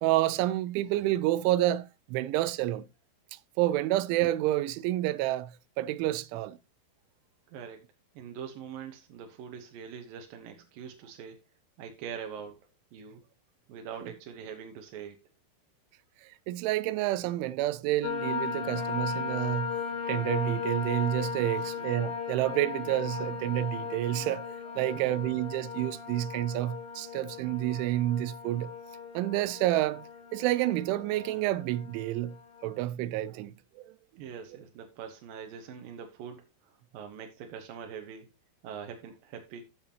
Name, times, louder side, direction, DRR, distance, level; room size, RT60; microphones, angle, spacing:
voice 1, 0.0-2.9 3.6-5.5 5.8-6.6 16.2-19.7 20.1-28.7 29.1-32.4 32.6-33.9, right 15 dB, 85° right, 3.1 m, -29 dB
voice 2, 8.2-11.4 11.8-12.6 12.9-13.2 13.7-15.2 21.6-21.7 34.2-38.3 38.6-39.6, right 7 dB, 65° right, 2.4 m, -43 dB
sound 1, 18.0-32.7, left 6 dB, 80° left, 5.1 m, -37 dB
13.5 x 7.3 x 2.9 m
omnidirectional pair, 5.4 m